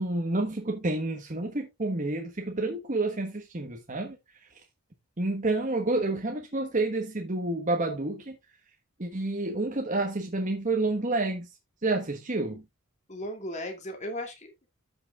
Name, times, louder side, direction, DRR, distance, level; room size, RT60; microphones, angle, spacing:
voice 1, 0.0-4.2 5.2-8.4 9.0-11.5 11.8-12.6, right 2 dB, 35° right, 1.2 m, -29 dB
voice 2, 13.1-14.7, left 1 dB, 30° left, 2.6 m, -36 dB
14.0 x 5.9 x 2.4 m
head